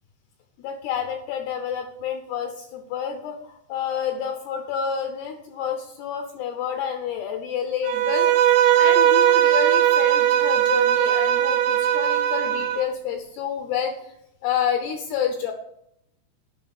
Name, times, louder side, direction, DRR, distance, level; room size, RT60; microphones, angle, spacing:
voice 1, 0.6-8.3 8.8-13.9 14.4-15.5, left 8 dB, 75° left, 5 dB, 2.5 m, -29 dB
Bowed string instrument, 7.9-12.8, right 11 dB, 80° right, 2.8 m, -19 dB
10.0 x 5.7 x 7.0 m, 0.76 s
omnidirectional pair, 5.5 m